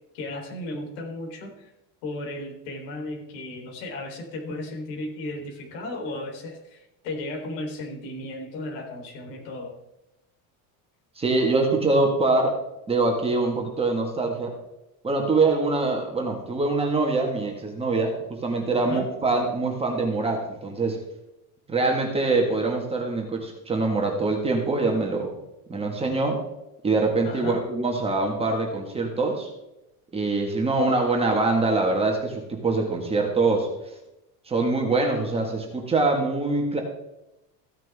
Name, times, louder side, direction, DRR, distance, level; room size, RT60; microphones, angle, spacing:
voice 1, 0.1-1.7 2.0-9.8 18.7-19.1 27.2-27.6, left 2 dB, 70° left, 1 dB, 3.8 m, -35 dB
voice 2, 11.2-12.6 12.9-14.5 15.0-21.0 21.7-25.3 25.7-26.4 26.8-29.5 30.1-33.7 34.5-36.8, right 3 dB, 15° right, 1 dB, 1.7 m, -24 dB
15.0 x 10.5 x 3.6 m, 0.90 s
cardioid pair, 175°, 40 cm